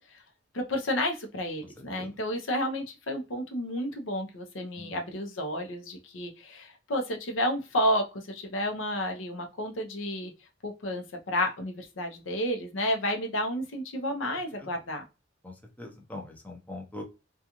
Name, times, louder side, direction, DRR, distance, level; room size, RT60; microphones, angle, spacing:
voice 1, 0.5-10.3 10.6-15.0, equal, 85° left, 3 dB, 0.7 m, -31 dB
voice 2, 1.8-2.1 4.8-4.9 14.6-14.7 15.4-17.0, left 2 dB, 10° left, 1 dB, 0.5 m, -42 dB
2.4 x 2.3 x 2.9 m, 0.28 s
head